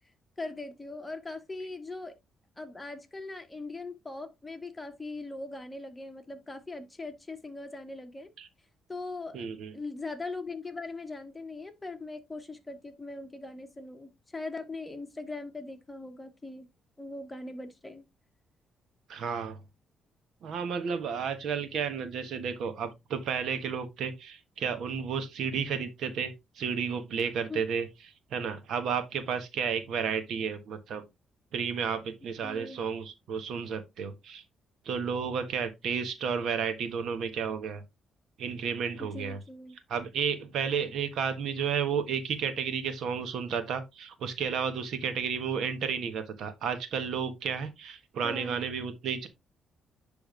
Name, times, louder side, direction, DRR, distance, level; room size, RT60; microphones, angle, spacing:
voice 1, 0.4-2.1 2.6-8.3 8.9-9.4 9.7-16.7 17.0-18.1 27.5-27.6 32.4-32.8 39.0-39.8 48.2-48.7, left 2 dB, 15° left, 1.4 m, -40 dB
voice 2, 9.3-9.7 19.1-19.6 20.4-27.9 28.3-31.0 31.5-34.4 34.8-37.8 38.4-39.4 39.9-49.3, right 6 dB, 75° right, 1.3 m, -32 dB
10.0 x 3.5 x 3.2 m
cardioid pair, 90°, 0 cm